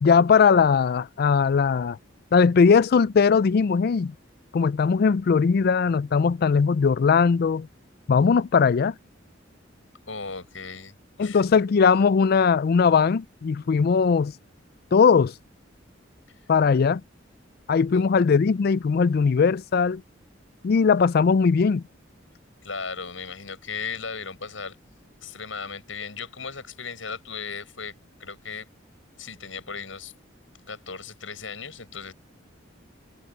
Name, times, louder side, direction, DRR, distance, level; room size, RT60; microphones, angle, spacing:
voice 1, 0.0-2.0 2.3-4.1 4.5-7.7 8.1-8.9 11.2-14.3 14.9-15.3 16.5-17.0 17.7-20.0 20.6-21.8, left 5 dB, 50° left, 0.4 m, -19 dB
voice 2, 10.1-11.4 17.9-18.1 22.6-24.8 25.2-27.9 28.2-28.7 29.2-30.1 30.7-32.1, left 5 dB, 80° left, 7.8 m, -36 dB
head